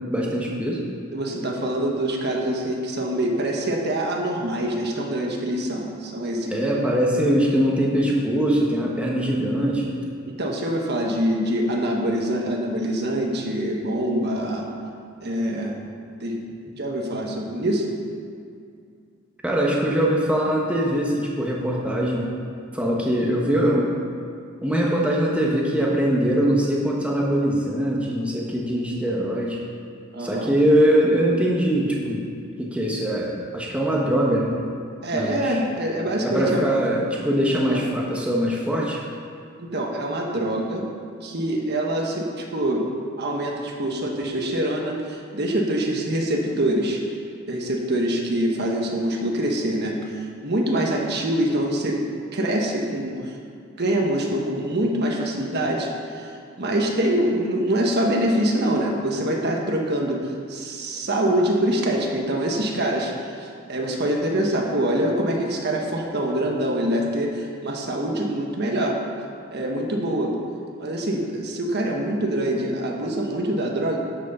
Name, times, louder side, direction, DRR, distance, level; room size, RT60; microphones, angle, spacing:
voice 1, 0.1-0.8 6.5-9.9 19.4-22.3 22.7-23.9 24.6-29.6 30.2-32.2 32.6-34.6 35.1-35.6 36.2-39.0, equal, 5° right, -3 dB, 1.1 m, -22 dB
voice 2, 1.1-6.7 10.3-14.7 15.2-15.8 16.2-16.4 16.8-18.0 30.1-30.5 35.0-36.6 37.7-37.8 39.6-40.8 41.2-42.9 43.2-47.0 47.5-53.4 53.8-69.0 69.5-70.4 70.8-74.0, right 1 dB, 50° right, 0 dB, 1.3 m, -25 dB
12.5 x 6.3 x 5.5 m, 2.4 s
head